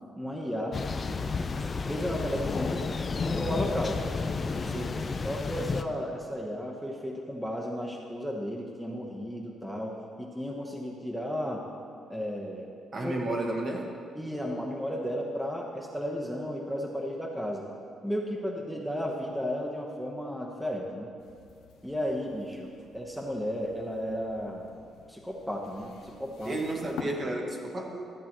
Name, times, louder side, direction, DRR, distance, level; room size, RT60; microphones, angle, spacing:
voice 1, 0.1-0.8 1.8-2.8 3.1-4.0 5.2-11.6 12.1-12.7 13.0-13.1 14.1-17.6 18.0-21.1 21.8-24.7 25.1-26.6, equal, ahead, -1 dB, 1.0 m, -34 dB
Thunder, 0.7-5.8, left 4 dB, 35° left, 0.5 m, -31 dB
voice 2, 4.7-5.1 12.9-14.0 26.4-28.1, right 1 dB, 40° right, 0 dB, 1.3 m, -32 dB
sound 1, 21.2-27.0, left 8 dB, 85° left, 0.8 m, -49 dB
13.5 x 8.1 x 3.0 m, 2.4 s
cardioid pair, 90°, 0 cm